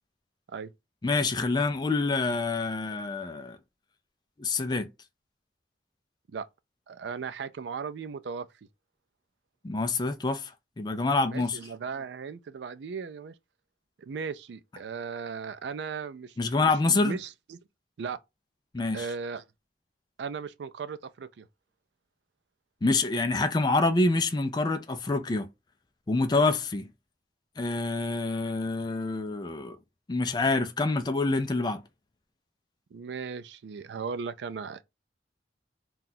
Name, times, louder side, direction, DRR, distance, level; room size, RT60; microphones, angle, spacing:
voice 1, 1.0-3.6 4.4-4.9 9.6-10.5 10.8-11.6 16.4-17.2 18.7-19.1 22.8-25.5 26.1-26.9 27.6-29.8 30.1-31.8, left 3 dB, 25° left, 0.4 m, -26 dB
voice 2, 6.9-8.5 11.3-13.3 14.0-17.6 18.0-18.2 18.9-19.4 20.2-21.5 26.3-26.5 32.9-34.8, right 5 dB, 75° right, 0.4 m, -37 dB
2.7 x 2.3 x 3.9 m
head